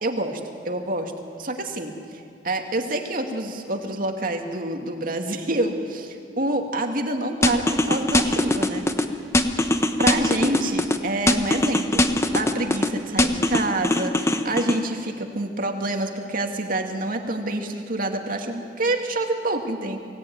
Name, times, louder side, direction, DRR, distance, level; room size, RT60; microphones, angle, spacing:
voice 1, 0.0-1.1 1.4-1.9 2.4-8.9 10.0-20.0, right 2 dB, 50° right, 4 dB, 2.3 m, -27 dB
sound 1, 7.4-9.0 9.3-11.0 11.3-12.9 13.2-14.8, left 1 dB, 15° left, 1.1 m, -21 dB
23.5 x 17.0 x 9.4 m, 2.3 s
head